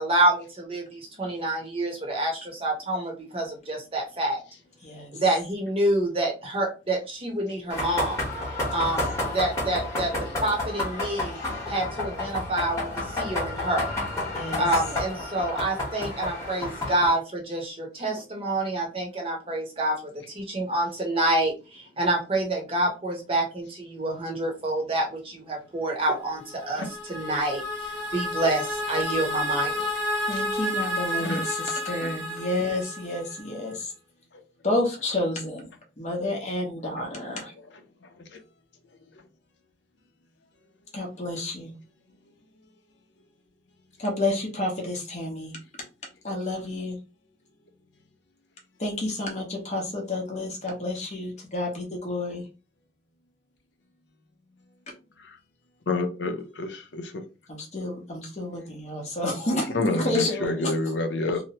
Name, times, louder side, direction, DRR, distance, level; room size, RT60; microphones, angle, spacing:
voice 1, 0.0-4.4 5.1-8.2 8.7-11.4 11.7-13.9 14.6-29.7, right 1 dB, 30° right, 0.8 m, -27 dB
voice 2, 4.8-5.1 8.8-8.9 14.3-14.7 30.3-33.9 34.6-37.5 40.9-41.7 44.0-45.5 46.2-47.0 48.8-52.4 57.5-60.7, left 2 dB, 40° left, 0.9 m, -30 dB
sound 1, 7.7-17.1, left 2 dB, 15° left, 1.1 m, -30 dB
sound 2, 26.3-33.5, left 1 dB, 80° right, 1.2 m, -31 dB
voice 3, 55.9-57.1 59.7-61.4, left 2 dB, 70° left, 0.6 m, -27 dB
2.9 x 2.1 x 2.9 m
head